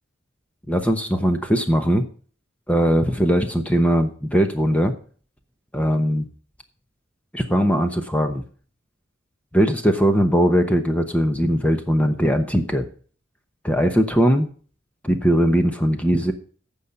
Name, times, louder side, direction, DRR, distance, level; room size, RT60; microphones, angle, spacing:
voice 1, 0.7-2.0 2.7-4.9 5.7-6.3 7.3-8.4 9.5-12.9 13.6-14.5 15.0-16.3, equal, 5° left, 6 dB, 0.9 m, -20 dB
15.0 x 5.6 x 5.8 m, 0.43 s
head